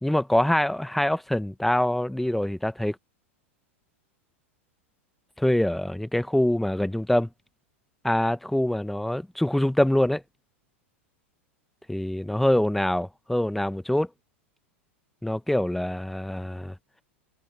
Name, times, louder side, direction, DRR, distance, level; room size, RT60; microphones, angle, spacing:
voice 1, 0.0-3.0 5.4-7.3 8.0-10.2 11.9-14.1 15.2-16.7, left 1 dB, 5° left, 1.3 m, -24 dB
figure-of-eight pair, 95°, 7 cm